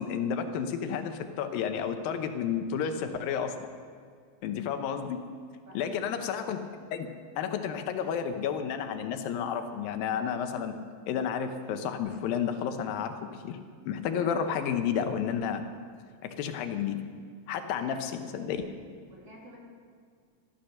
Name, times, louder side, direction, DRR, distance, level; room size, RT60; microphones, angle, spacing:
voice 1, 0.0-3.7 4.4-5.2 5.7-6.6 6.9-7.1 7.4-10.8 11.1-13.6 13.9-15.6 16.2-17.0 17.5-18.6, left 7 dB, 80° left, 8 dB, 2.6 m, -31 dB
voice 2, 5.7-6.0 17.6-18.3 19.1-19.6, equal, 45° right, -3 dB, 3.6 m, -51 dB
13.5 x 13.0 x 6.5 m, 2.1 s
omnidirectional pair, 4.1 m